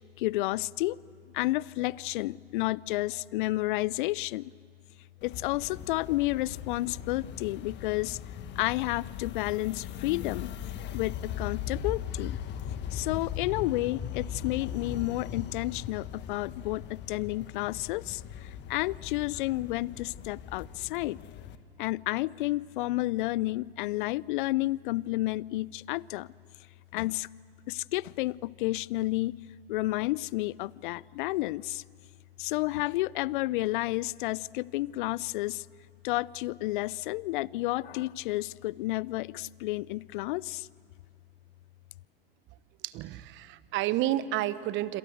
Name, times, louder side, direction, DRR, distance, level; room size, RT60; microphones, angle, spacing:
voice 1, 0.2-1.0 1.3-4.5 5.2-8.2 8.6-10.5 10.9-12.4 12.9-21.2 21.8-26.3 26.9-27.3 27.7-29.4 29.7-31.8 32.4-35.7 36.0-40.7, left 18 dB, 60° left, 24 dB, 0.6 m, -31 dB
sound 1, 5.2-21.6, left 9 dB, 35° left, 1.6 m, -39 dB
voice 2, 42.8-45.0, right 14 dB, 40° right, 16 dB, 1.1 m, -30 dB
27.0 x 26.5 x 7.9 m, 2.3 s
hypercardioid pair, 95°, 30 cm